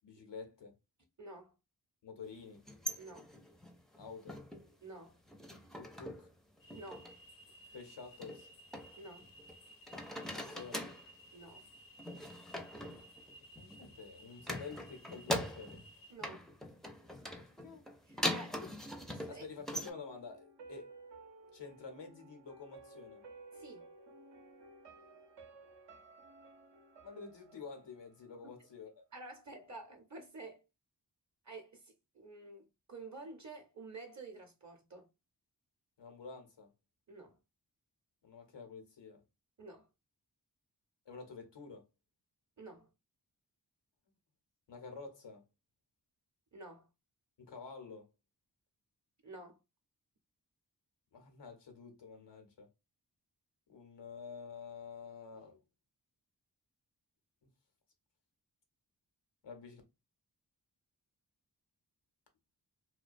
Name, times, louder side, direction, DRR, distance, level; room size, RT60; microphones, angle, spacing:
voice 1, 0.0-0.8 2.0-2.6 4.0-4.4 5.8-6.3 7.7-8.5 10.3-10.9 13.5-15.8 17.3-17.9 18.6-18.8 19.3-20.9 21.5-23.2 27.0-29.0 36.0-36.7 38.2-39.2 41.1-41.9 44.7-45.4 47.4-48.1 51.1-52.7 53.7-55.6 59.4-59.8, left 5 dB, 90° left, 0.8 m, -49 dB
voice 2, 1.2-1.5 3.0-3.3 4.8-5.2 6.7-7.1 9.0-9.3 11.3-11.6 16.1-16.4 18.1-18.6 19.1-19.5 23.5-23.9 29.1-30.6 31.4-35.1 37.1-37.4 39.6-39.9 42.6-42.9 46.5-46.9 49.2-49.6, right 2 dB, 45° right, 0.6 m, -50 dB
sound 1, 2.5-4.7 5.1-6.3 6.6-7.1 8.2-9.6 9.9-11.1 12.0-13.9 14.4-15.9 16.2-19.9, equal, ahead, 0.4 m, -42 dB
sound 2, 6.6-16.2, right 1 dB, 55° left, 0.5 m, -58 dB
sound 3, 19.8-28.8 29.1-29.2, right 3 dB, 80° right, 0.7 m, -56 dB
2.3 x 2.1 x 2.5 m
cardioid pair, 40°, 41 cm